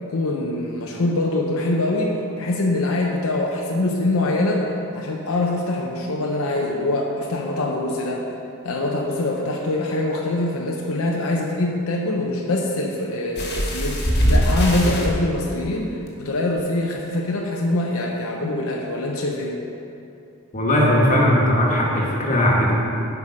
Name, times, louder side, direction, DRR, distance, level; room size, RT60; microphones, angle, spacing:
voice 1, 0.0-4.7 4.9-8.3 8.6-19.6, left 2 dB, 80° left, -1 dB, 0.7 m, -24 dB
sound 1, 13.4-15.1 16.1-16.2 16.6-16.7, equal, 50° left, 1.5 m, -21 dB
voice 2, 20.5-22.7, left 1 dB, 35° left, -3 dB, 1.4 m, -18 dB
8.3 x 5.6 x 5.0 m, 2.6 s
head